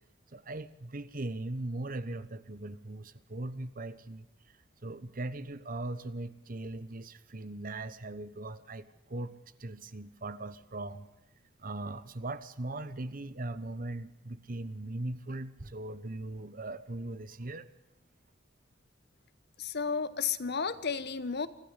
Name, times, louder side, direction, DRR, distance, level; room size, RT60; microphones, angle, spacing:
voice 1, 0.3-4.3 4.8-11.1 11.6-17.7, right 2 dB, 45° right, 15 dB, 1.1 m, -39 dB
voice 2, 19.6-21.5, left 6 dB, 55° left, 14 dB, 1.1 m, -32 dB
24.5 x 15.5 x 8.2 m, 0.92 s
head